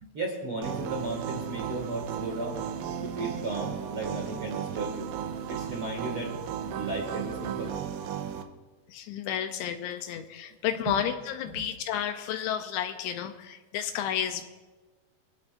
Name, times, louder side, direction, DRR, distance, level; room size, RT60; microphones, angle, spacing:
voice 1, 0.0-2.6 3.0-5.1 5.5-6.3 6.7-7.8 10.9-11.0 11.5-11.6, right 2 dB, 45° right, -1 dB, 2.0 m, -35 dB
sound 1, 0.6-8.4, right 8 dB, 80° right, 3.2 m, -35 dB
voice 2, 8.9-14.4, left 9 dB, 80° left, 7 dB, 2.8 m, -31 dB
24.5 x 16.0 x 2.6 m, 1.3 s
omnidirectional pair, 5.5 m